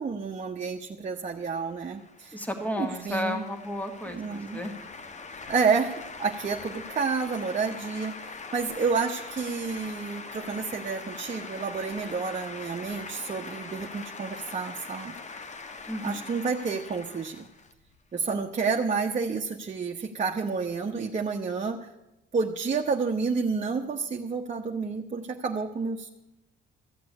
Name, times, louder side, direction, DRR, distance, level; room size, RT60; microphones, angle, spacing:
voice 1, 0.0-2.4 2.8-3.4 4.1-4.6 5.5-5.9 6.2-15.2 16.0-17.5 18.1-21.9 22.3-26.1, right 5 dB, 35° right, 1 dB, 1.1 m, -30 dB
sound 1, 1.6-18.3, left 4 dB, 35° left, 1.1 m, -42 dB
voice 2, 2.3-4.7 15.9-16.3, left 1 dB, 10° left, 6 dB, 1.9 m, -33 dB
14.5 x 7.6 x 8.3 m, 0.93 s
cardioid pair, 90°, 20 cm